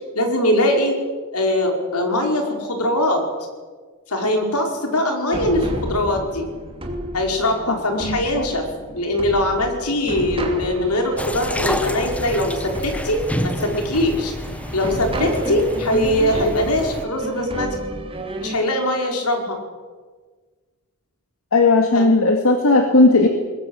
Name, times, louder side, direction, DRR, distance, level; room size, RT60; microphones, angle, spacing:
voice 1, 0.1-0.9 1.3-3.2 4.1-6.5 7.1-8.6 8.9-14.3 14.7-17.8 18.4-19.6 21.9-22.1, left 1 dB, 80° left, 3 dB, 5.0 m, -21 dB
sound 1, 5.3-18.6, equal, 25° right, 2.9 m, -32 dB
voice 2, 7.7-8.5 21.5-23.3, left 2 dB, 65° left, 4 dB, 2.2 m, -16 dB
sound 2, 11.2-17.0, equal, 5° left, 1.2 m, -29 dB
21.5 x 21.0 x 8.1 m, 1.5 s
head